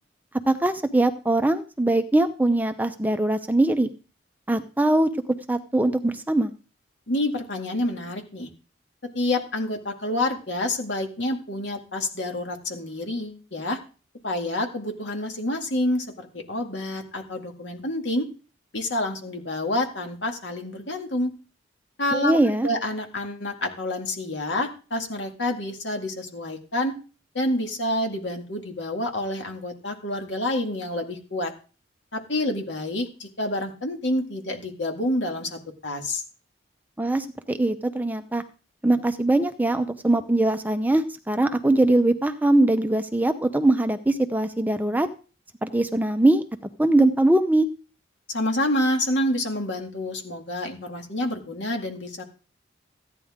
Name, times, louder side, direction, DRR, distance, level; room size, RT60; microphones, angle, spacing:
voice 1, 0.5-3.9 4.5-5.1 5.5-6.5 22.1-22.7 37.0-38.4 38.8-45.1 45.6-46.4 46.8-47.7, right 2 dB, 10° right, 8 dB, 0.6 m, -21 dB
voice 2, 7.1-8.5 9.1-13.8 14.2-18.3 18.7-21.3 22.0-22.4 22.6-26.9 27.3-31.5 32.1-36.2 48.3-52.2, left 1 dB, 75° left, 3 dB, 2.1 m, -28 dB
14.5 x 9.8 x 3.7 m, 0.36 s
head